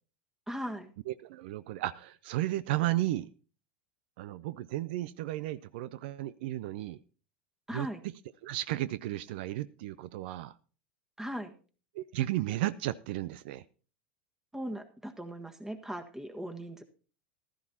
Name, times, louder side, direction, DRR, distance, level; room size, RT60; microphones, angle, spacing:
voice 1, 0.5-0.9 7.7-8.0 11.2-11.5 14.5-16.8, equal, 5° right, 1.6 m, -39 dB
voice 2, 1.1-3.3 4.2-7.0 7.7-7.9 8.4-10.5 11.9-13.6, right 15 dB, 65° right, 0.4 m, -34 dB
15.0 x 12.5 x 2.8 m
hypercardioid pair, 90°, 6 cm